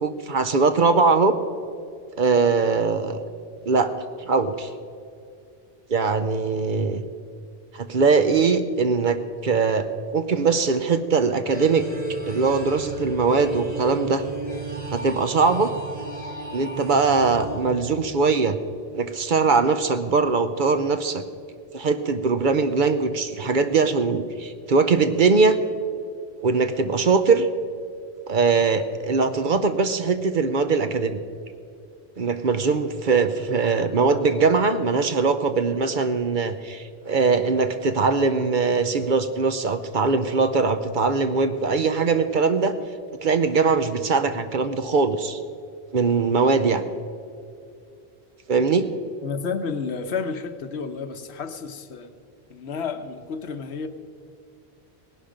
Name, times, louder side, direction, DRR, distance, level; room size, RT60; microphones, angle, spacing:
voice 1, 0.0-1.3 2.2-3.2 3.6-3.9 4.3-4.7 5.9-7.0 7.7-9.9 10.1-11.9 12.3-14.2 14.9-15.7 16.5-18.6 18.9-21.2 21.7-25.6 26.4-27.5 28.3-31.2 32.2-42.7 43.2-45.4 45.9-46.8 48.5-48.9, right 4 dB, 55° right, 10 dB, 0.8 m, -21 dB
voice 2, 2.3-2.7 49.2-52.1 52.5-53.9, left 5 dB, 85° left, 9 dB, 1.1 m, -31 dB
sound 1, 11.5-18.5, right 2 dB, 10° right, 3.1 m, -34 dB
18.5 x 11.5 x 5.1 m, 2.4 s
omnidirectional pair, 1.1 m